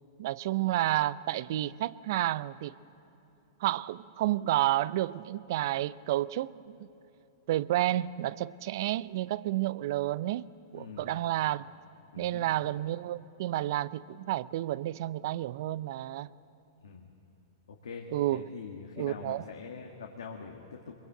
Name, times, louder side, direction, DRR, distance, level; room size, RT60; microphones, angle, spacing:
voice 1, 0.2-2.8 3.6-6.9 7.5-10.4 10.7-11.7 12.2-16.3 18.1-18.5 19.0-19.4, right 14 dB, 60° right, 19 dB, 0.5 m, -30 dB
voice 2, 10.7-11.2 12.1-12.5 16.8-17.1 17.7-20.9, left 5 dB, 80° left, 1 dB, 1.7 m, -44 dB
22.5 x 22.0 x 7.8 m, 2.8 s
hypercardioid pair, 115°, 2 cm